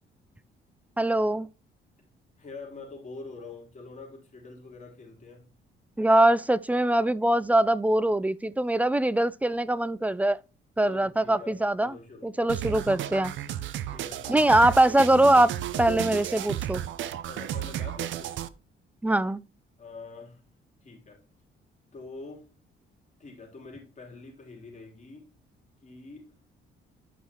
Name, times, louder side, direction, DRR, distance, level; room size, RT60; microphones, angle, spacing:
voice 1, 1.0-1.5 6.0-10.4 10.8-11.9 12.2-13.3 14.3-16.8 19.0-19.4, right 1 dB, 5° right, 0.4 m, -22 dB
voice 2, 2.4-5.5 10.8-12.3 13.9-14.5 17.2-18.4 19.8-20.4 20.8-21.2 21.9-22.5 23.2-25.3 25.8-26.3, left 3 dB, 35° left, 3.3 m, -45 dB
sound 1, 12.5-18.5, right 11 dB, 75° right, 0.7 m, -33 dB
11.0 x 5.5 x 2.9 m
cardioid pair, 90°, 20 cm